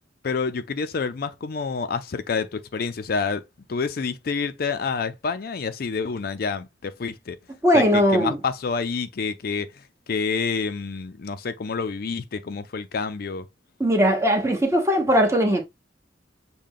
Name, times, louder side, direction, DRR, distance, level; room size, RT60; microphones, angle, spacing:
voice 1, 0.2-3.4 3.7-7.4 7.7-13.5, left 5 dB, 55° left, 0.4 m, -28 dB
voice 2, 7.6-8.4 13.8-15.6, equal, 15° right, 1.1 m, -19 dB
6.6 x 2.2 x 3.6 m
head